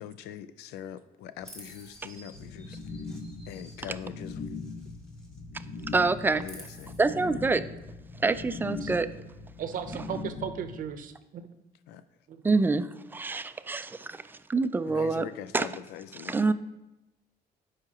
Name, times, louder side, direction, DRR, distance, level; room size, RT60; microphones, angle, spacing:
voice 1, 0.0-2.8 3.5-4.5 6.4-6.9 11.9-12.0 14.8-16.5, left 9 dB, 85° left, 0.4 m, -42 dB
Chirp tweet, 1.4-5.4 5.7-7.0, right 1 dB, 5° left, 1.6 m, -52 dB
sound 1, 2.3-10.9, left 3 dB, 60° left, 1.0 m, -40 dB
voice 2, 5.9-6.4 7.0-7.6 8.2-9.1 12.4-15.3 15.5-15.7 16.3-16.5, right 3 dB, 10° right, 0.3 m, -26 dB
voice 3, 9.6-11.4 12.3-12.4, right 8 dB, 55° right, 0.7 m, -36 dB
12.0 x 4.9 x 2.9 m
cardioid pair, 110°, 17 cm